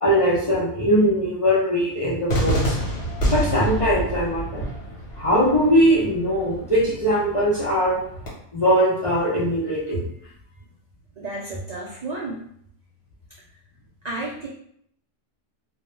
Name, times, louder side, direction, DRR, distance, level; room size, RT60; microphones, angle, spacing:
voice 1, 0.0-2.8 3.3-4.7 5.2-8.0 8.5-10.0, equal, 40° left, -7 dB, 0.5 m, -20 dB
Cheering / Fireworks, 2.3-8.3, equal, 70° left, 1.1 m, -28 dB
voice 2, 11.2-12.4 14.0-14.5, right 2 dB, 75° right, -4 dB, 0.3 m, -31 dB
2.3 x 2.1 x 3.0 m, 0.68 s
omnidirectional pair, 1.2 m